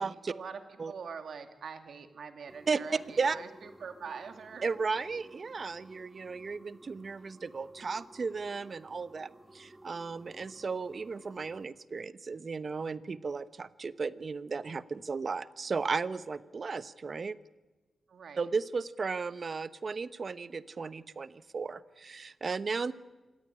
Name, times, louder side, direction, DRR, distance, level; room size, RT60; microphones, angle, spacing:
voice 1, 0.0-4.7 18.1-18.5, right 6 dB, 75° right, 7 dB, 2.5 m, -44 dB
sound 1, 2.5-11.6, right 1 dB, 20° right, 1.9 m, -55 dB
voice 2, 4.6-17.4 18.4-22.9, right 4 dB, 50° right, 14 dB, 1.1 m, -35 dB
26.0 x 17.5 x 10.0 m, 1.2 s
cardioid pair, 80°, 0 cm